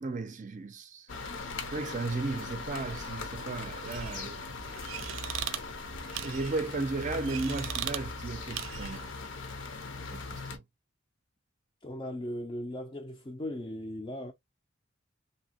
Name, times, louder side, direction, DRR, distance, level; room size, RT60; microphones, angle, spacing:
voice 1, 0.0-1.1 1.7-4.5 6.2-9.1 10.0-10.6, right 3 dB, 40° right, 0.5 m, -35 dB
sound 1, 1.1-10.6, left 3 dB, 70° left, 0.6 m, -40 dB
sound 2, 3.9-9.1, right 9 dB, 90° right, 0.5 m, -40 dB
voice 2, 11.8-14.3, left 1 dB, 25° left, 0.4 m, -38 dB
2.8 x 2.7 x 2.8 m
head